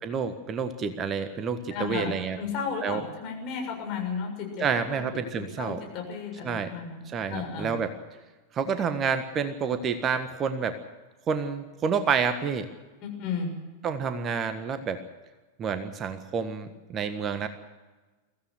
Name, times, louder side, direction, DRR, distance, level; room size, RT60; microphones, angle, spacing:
voice 1, 0.0-2.4 2.8-3.0 4.6-5.8 6.4-6.7 7.1-7.9 8.5-10.7 11.3-12.7 13.8-15.0 15.6-17.5, right 6 dB, 25° right, 10 dB, 1.5 m, -29 dB
voice 2, 1.7-2.1 2.4-5.0 5.3-7.0 7.3-7.7 13.0-13.5, left 6 dB, 40° left, 2 dB, 6.9 m, -33 dB
23.0 x 16.0 x 8.0 m, 1.2 s
figure-of-eight pair, 90°, 0 cm